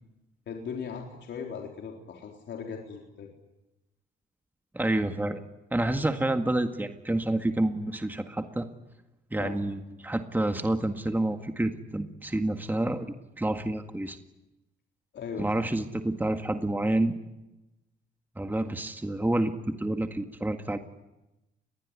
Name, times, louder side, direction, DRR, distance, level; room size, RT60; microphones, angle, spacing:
voice 1, 0.5-3.3 9.4-9.6 15.1-15.5, left 6 dB, 65° left, 1 dB, 4.0 m, -38 dB
voice 2, 4.7-5.4 5.7-8.7 9.3-14.2 15.4-17.2 18.4-19.5 19.8-20.8, right 1 dB, 10° right, 6 dB, 1.9 m, -28 dB
28.0 x 21.5 x 9.8 m, 0.98 s
cardioid pair, 90°, 20 cm